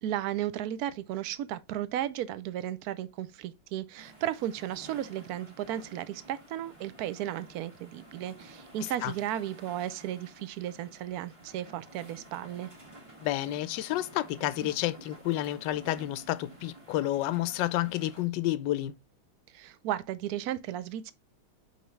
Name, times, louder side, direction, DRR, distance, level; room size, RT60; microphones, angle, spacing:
voice 1, 0.0-12.7 19.5-21.1, right 12 dB, 80° right, 0.8 m, -34 dB
sound 1, 4.0-18.2, right 1 dB, 20° right, 1.2 m, -52 dB
voice 2, 13.2-19.0, left 14 dB, 70° left, 1.1 m, -30 dB
5.9 x 5.5 x 3.1 m
omnidirectional pair, 2.3 m